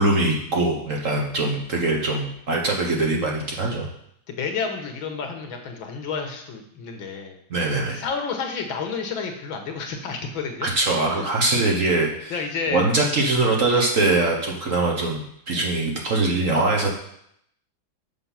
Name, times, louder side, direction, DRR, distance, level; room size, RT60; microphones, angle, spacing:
voice 1, 0.0-3.9 7.5-8.0 10.6-12.4 12.7-16.9, right 2 dB, 45° right, 0 dB, 1.2 m, -22 dB
voice 2, 4.3-7.4 7.9-10.7 11.1-11.3 12.3-12.9 15.5-15.6, left 5 dB, 75° left, 4 dB, 1.9 m, -30 dB
7.0 x 5.7 x 5.8 m, 0.72 s
omnidirectional pair, 2.2 m